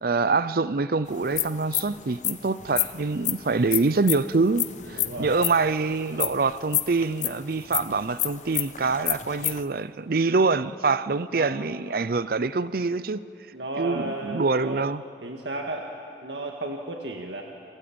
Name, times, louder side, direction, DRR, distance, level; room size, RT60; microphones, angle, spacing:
voice 1, 0.0-13.2 13.8-15.0, right 4 dB, 55° right, 0.6 m, -25 dB
sound 1, 1.1-9.6, left 13 dB, 45° left, 0.8 m, -29 dB
voice 2, 4.9-5.4 11.3-11.5 13.5-14.8 15.2-15.9 16.2-17.4, right 2 dB, 75° right, 1.9 m, -33 dB
29.5 x 23.0 x 8.8 m
head